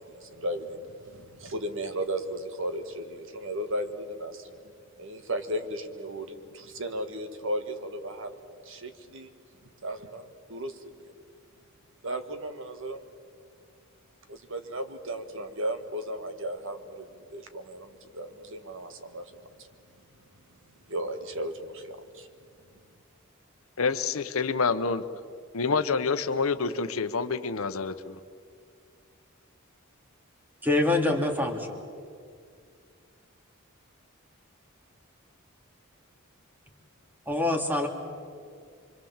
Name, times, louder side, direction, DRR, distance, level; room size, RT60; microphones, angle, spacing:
voice 1, 0.0-4.6 5.0-8.3 8.6-9.3 9.8-10.9 12.0-13.0 14.3-19.7 20.9-22.3, right 1 dB, 65° right, 8 dB, 1.6 m, -35 dB
voice 2, 23.8-25.0 25.5-28.2, left 4 dB, 75° left, 10 dB, 0.9 m, -27 dB
voice 3, 30.6-31.8 37.3-37.9, left 2 dB, 10° right, 3 dB, 2.5 m, -25 dB
25.5 x 25.0 x 7.4 m, 2.2 s
head